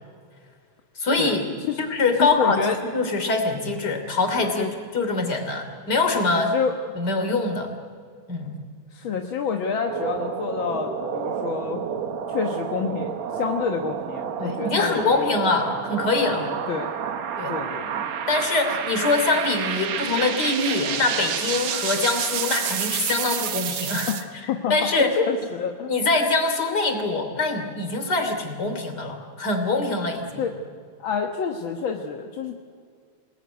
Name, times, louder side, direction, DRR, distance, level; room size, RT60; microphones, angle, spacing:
voice 1, 1.0-1.5 1.8-2.6 2.9-4.7 4.9-6.5 7.0-7.7 8.3-8.6 14.4-16.5 17.4-17.5 18.3-24.1 24.7-25.2 25.9-30.5, left 3 dB, 35° left, 5 dB, 3.5 m, -24 dB
voice 2, 2.2-2.8 4.6-4.7 6.3-6.7 8.9-11.8 12.3-15.3 16.3-16.9 17.5-18.1 24.1-24.2 24.5-25.9 30.4-30.5 31.0-32.6, left 6 dB, 55° left, 3 dB, 1.6 m, -28 dB
sound 1, 9.6-24.2, right 8 dB, 65° right, 2.5 m, -29 dB
28.5 x 19.5 x 9.5 m, 2.2 s
omnidirectional pair, 3.4 m